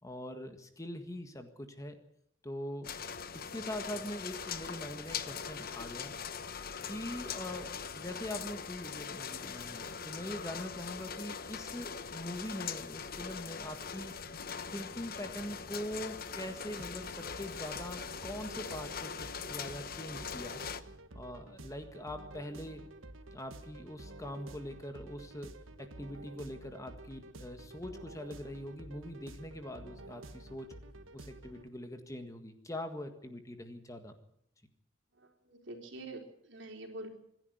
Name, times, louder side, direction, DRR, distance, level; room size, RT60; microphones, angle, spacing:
voice 1, 0.0-2.0 2.4-2.9 3.3-6.1 6.9-14.1 14.7-20.6 21.1-22.8 23.3-30.7 31.1-34.1, left 1 dB, 15° left, 7 dB, 1.7 m, -43 dB
sound 1, 2.8-20.8, left 6 dB, 50° left, 1.0 m, -42 dB
sound 2, 16.7-31.7, right 2 dB, 90° right, 1.5 m, -50 dB
voice 2, 35.2-37.1, right 2 dB, 65° right, 3 dB, 4.2 m, -46 dB
26.0 x 11.0 x 9.5 m, 0.72 s
head